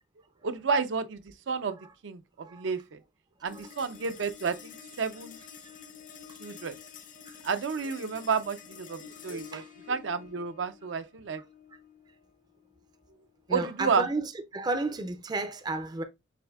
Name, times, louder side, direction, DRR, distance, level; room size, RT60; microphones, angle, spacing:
voice 1, 0.4-1.2 1.5-1.8 2.0-3.0 3.4-5.4 6.4-6.7 7.4-9.6 9.9-11.4 13.5-14.1, right 5 dB, 75° right, 0.5 m, -31 dB
sound 1, 3.5-14.1, left 7 dB, 45° left, 0.7 m, -49 dB
voice 2, 13.5-16.0, right 2 dB, 20° right, 0.4 m, -32 dB
6.7 x 2.6 x 2.3 m
head